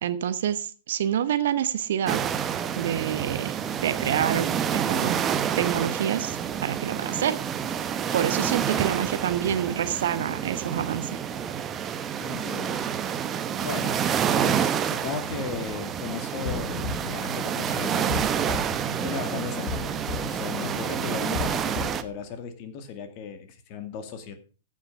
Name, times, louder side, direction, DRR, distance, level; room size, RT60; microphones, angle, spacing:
voice 1, 0.0-2.2 2.8-3.5 3.8-5.2 5.6-7.4 8.1-11.2, right 9 dB, 60° right, 12 dB, 1.0 m, -27 dB
sound 1, 2.1-22.0, right 8 dB, 25° right, 1.0 m, -28 dB
voice 2, 12.2-12.9 13.6-20.0 20.3-24.3, left 6 dB, 40° left, 8 dB, 2.2 m, -37 dB
sound 2, 16.4-22.1, left 4 dB, 65° left, 1.9 m, -35 dB
15.0 x 6.1 x 5.4 m, 0.37 s
figure-of-eight pair, 100°, 0 cm